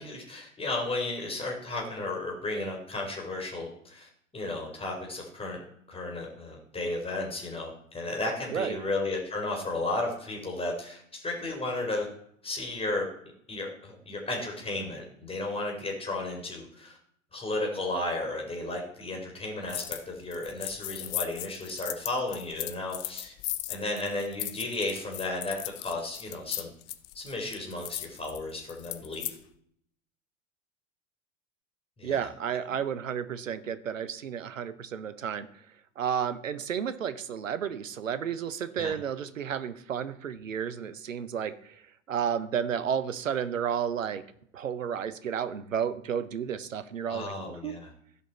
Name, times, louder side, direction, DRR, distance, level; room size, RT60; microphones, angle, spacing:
voice 1, 0.0-5.6 5.9-12.1 12.4-13.0 13.5-17.0 17.3-23.3 23.7-26.7 27.1-29.4 32.0-32.2 38.8-38.9 47.1-47.9, left 2 dB, 15° left, 0 dB, 3.0 m, -34 dB
voice 2, 8.5-8.8 32.0-35.6 36.0-44.3 44.5-47.8, right 8 dB, 80° right, 14 dB, 0.8 m, -32 dB
sound 1, 19.7-20.0 20.3-29.4, left 16 dB, 40° left, 0.7 m, -37 dB
15.5 x 5.2 x 4.3 m, 0.68 s
figure-of-eight pair, 75°, 38 cm